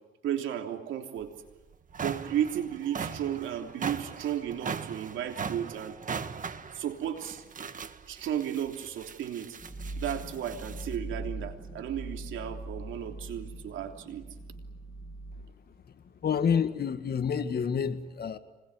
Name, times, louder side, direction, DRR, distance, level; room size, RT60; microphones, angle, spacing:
voice 1, 0.2-1.3 2.0-6.0 6.7-7.4 8.1-9.6 10.0-14.3, right 10 dB, 80° right, 4 dB, 3.2 m, -34 dB
sound 1, 1.2-1.3 1.7-11.0, right 6 dB, 40° right, 1.7 m, -39 dB
sound 2, 9.6-15.4, right 2 dB, 20° left, 3.1 m, -41 dB
voice 2, 16.2-18.4, left 7 dB, 50° left, 10 dB, 1.9 m, -28 dB
26.0 x 20.5 x 9.7 m, 1.1 s
cardioid pair, 90°, 20 cm